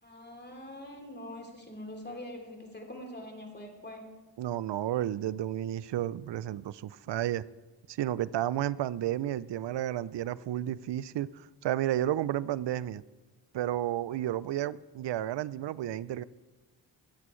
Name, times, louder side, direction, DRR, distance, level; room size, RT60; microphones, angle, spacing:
voice 1, 0.0-4.1, left 1 dB, 20° left, 3.0 m, -44 dB
voice 2, 4.4-7.4 7.9-13.0 13.5-16.2, right 12 dB, 60° right, 0.5 m, -32 dB
21.5 x 8.3 x 3.2 m
cardioid pair, 50°, 48 cm